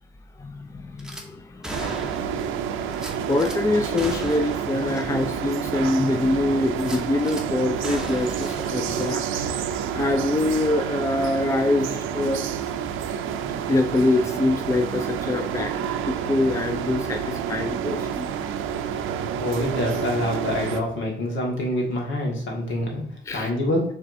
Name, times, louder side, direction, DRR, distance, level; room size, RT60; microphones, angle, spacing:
voice 1, 0.4-3.0 3.3-9.7 9.9-12.4 13.7-15.7 16.0-18.3 23.3-23.5, left 2 dB, 15° left, 6 dB, 0.4 m, -25 dB
Gunshot gunfire / Glass, 1.0-1.3 1.6-2.4 2.9-3.6 4.0-4.6 5.0-5.1 5.5-5.6 6.8-7.5 7.8-9.6 10.0-10.1, right 1 dB, 5° right, 0.8 m, -37 dB
sound 1, 1.7-20.8, right 8 dB, 85° right, 0.5 m, -29 dB
voice 2, 19.4-23.8, left 1 dB, 70° left, -1 dB, 1.7 m, -26 dB
5.9 x 3.4 x 2.6 m, 0.67 s
cardioid pair, 90°, 20 cm